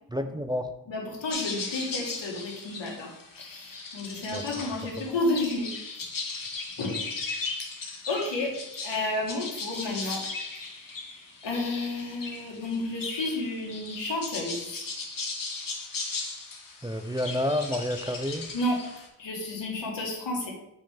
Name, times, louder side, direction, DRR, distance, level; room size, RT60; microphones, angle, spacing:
voice 1, 0.1-0.7 4.3-4.5 5.1-5.2 16.8-18.5, left 1 dB, 10° right, 7 dB, 0.4 m, -29 dB
voice 2, 0.9-5.7 5.9-6.0 6.8-7.1 7.6-8.6 8.8-10.3 10.5-14.9 18.5-18.8 19.2-20.5, left 2 dB, 90° left, -2 dB, 1.9 m, -32 dB
sound 1, 1.3-19.1, left 3 dB, 50° left, 1.4 m, -37 dB
7.6 x 4.3 x 3.7 m, 0.83 s
wide cardioid pair, 90°, 43 cm